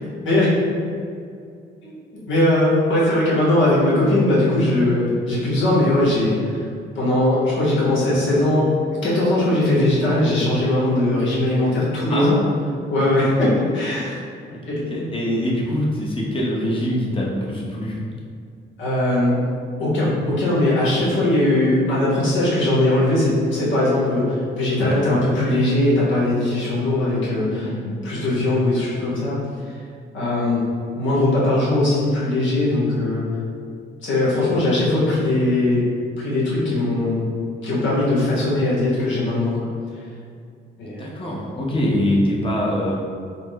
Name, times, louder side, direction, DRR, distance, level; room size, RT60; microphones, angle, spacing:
voice 1, 2.3-6.7 6.9-8.8 9.0-12.4 12.9-14.2 14.6-15.0 18.8-19.3 19.8-27.7 28.0-29.8 30.1-30.6 30.9-33.2 34.0-35.9 36.2-37.2 37.6-39.7 40.8-41.0, left 1 dB, 75° left, -8 dB, 1.2 m, -20 dB
voice 2, 14.7-18.0 24.8-25.1 27.6-27.9 40.8-43.0, left 1 dB, 25° left, -3 dB, 0.9 m, -24 dB
4.4 x 2.1 x 4.0 m, 2.3 s
cardioid pair, 90°, 20 cm